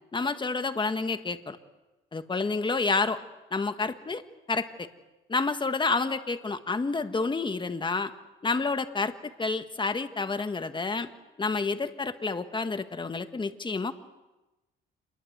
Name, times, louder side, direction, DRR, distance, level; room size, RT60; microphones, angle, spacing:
voice 1, 0.1-1.6 2.1-3.2 3.5-4.2 4.5-4.9 5.3-8.1 8.4-11.1 11.4-13.9, left 3 dB, 25° left, 9 dB, 1.6 m, -29 dB
27.5 x 22.0 x 8.0 m, 1.0 s
cardioid pair, 90°, 20 cm